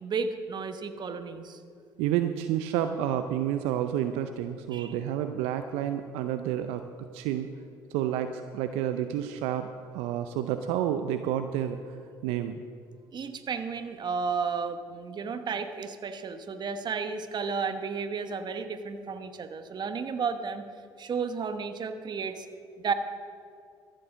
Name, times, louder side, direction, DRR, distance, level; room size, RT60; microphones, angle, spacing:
voice 1, 0.0-1.6 4.7-4.9 13.1-20.7 21.0-22.5 22.8-22.9, right 5 dB, 45° right, 9 dB, 1.1 m, -33 dB
voice 2, 2.0-6.8 7.1-7.5 7.9-12.0 12.2-12.6, right 10 dB, 75° right, 8 dB, 0.5 m, -30 dB
14.0 x 7.7 x 6.3 m, 2.3 s
hypercardioid pair, 60°, 10 cm